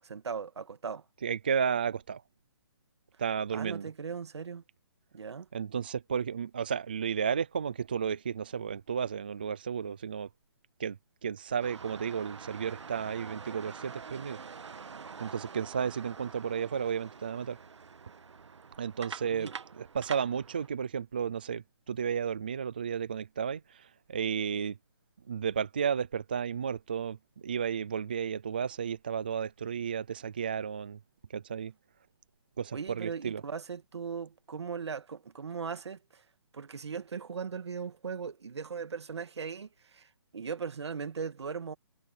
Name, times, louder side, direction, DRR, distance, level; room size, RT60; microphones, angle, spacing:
voice 1, 0.0-1.0 3.5-4.6 5.1-5.5 19.3-19.5 32.7-36.2 36.5-41.7, right 6 dB, 70° right, 2.1 m, -38 dB
voice 2, 1.2-2.2 3.2-3.9 5.5-10.3 10.8-11.0 11.2-14.4 15.2-17.6 18.8-19.5 19.8-24.8 25.3-31.0 31.3-31.7 32.6-33.4, right 7 dB, 20° right, 0.4 m, -33 dB
sound 1, 11.6-20.7, right 5 dB, 85° right, 1.4 m, -46 dB
hypercardioid pair, 175°, 15 cm